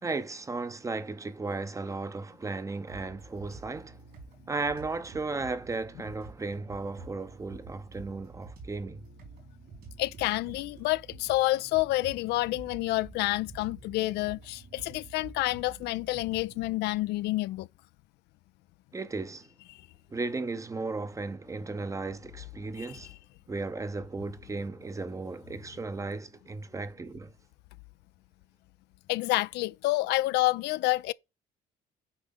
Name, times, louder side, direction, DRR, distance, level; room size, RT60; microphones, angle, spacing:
voice 1, 0.0-4.0 4.5-9.0 18.9-19.5 20.1-23.2 23.5-27.3, right 3 dB, 20° right, 0.7 m, -35 dB
sound 1, 2.9-16.7, right 3 dB, 70° right, 4.6 m, -49 dB
voice 2, 10.0-17.7 19.7-19.8 22.8-22.9 29.1-31.1, left 18 dB, 80° left, 0.4 m, -28 dB
8.7 x 4.8 x 3.6 m
cardioid pair, 110°, 17 cm